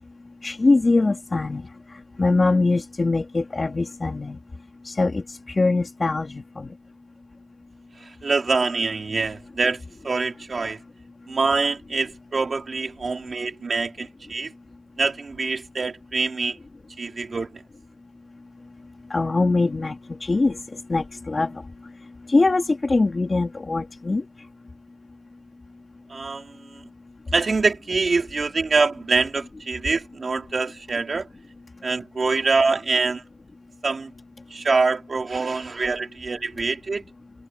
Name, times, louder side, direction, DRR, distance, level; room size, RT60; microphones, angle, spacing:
voice 1, 0.4-1.7 2.2-4.4 4.8-6.7 19.1-20.6 20.9-21.6 22.3-24.2, left 3 dB, 50° left, 3.8 m, -22 dB
voice 2, 8.0-10.8 11.3-14.5 15.0-16.6 17.0-17.6 26.1-26.8 27.3-31.3 31.8-33.2 33.8-34.1 34.5-37.0, right 4 dB, 70° right, 3.8 m, -25 dB
wide cardioid pair, 75°, 0 cm